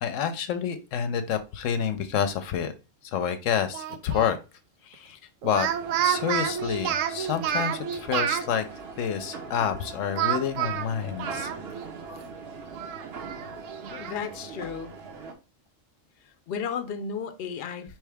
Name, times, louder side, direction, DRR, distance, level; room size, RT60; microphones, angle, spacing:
voice 1, 0.0-2.7 3.1-4.4 4.8-5.7 6.0-8.7 9.0-11.5, left 8 dB, 80° left, 0.9 m, -28 dB
Speech, 3.7-4.3 5.4-8.5 10.2-11.9 12.2-12.3 12.7-14.2, right 9 dB, 85° right, 1.0 m, -29 dB
sound 1, 5.6-15.3, right 4 dB, 60° right, 1.0 m, -41 dB
voice 2, 13.9-14.9 16.2-18.0, left 6 dB, 60° left, 0.8 m, -34 dB
4.6 x 3.1 x 3.3 m
omnidirectional pair, 1.3 m